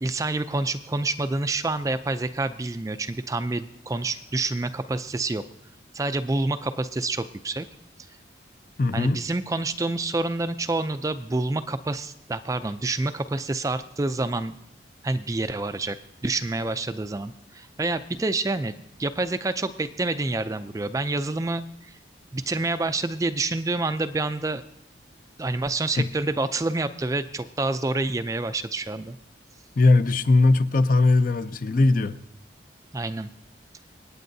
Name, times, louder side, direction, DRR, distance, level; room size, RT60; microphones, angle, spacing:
voice 1, 0.0-5.4 5.9-7.7 8.9-14.5 15.0-16.0 16.2-18.7 19.0-21.9 22.3-24.6 25.4-29.2 32.9-33.3, right 2 dB, 15° right, 0.3 m, -28 dB
voice 2, 8.8-9.2 29.8-32.2, left 2 dB, 45° left, 0.5 m, -19 dB
27.0 x 9.2 x 2.7 m
head